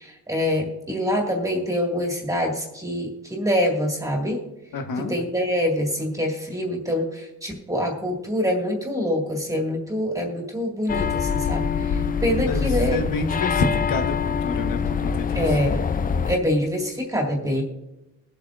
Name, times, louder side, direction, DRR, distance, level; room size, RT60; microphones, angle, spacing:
voice 1, 0.0-4.4 5.0-13.0 15.3-15.8 16.3-17.6, equal, 10° right, 0 dB, 1.9 m, -25 dB
voice 2, 4.7-5.1 12.5-14.1 14.4-15.6, left 3 dB, 80° left, 6 dB, 1.3 m, -28 dB
sound 1, 10.9-16.4, left 6 dB, 30° left, 0.3 m, -24 dB
22.0 x 8.2 x 2.5 m, 1.0 s
wide cardioid pair, 135°, 33 cm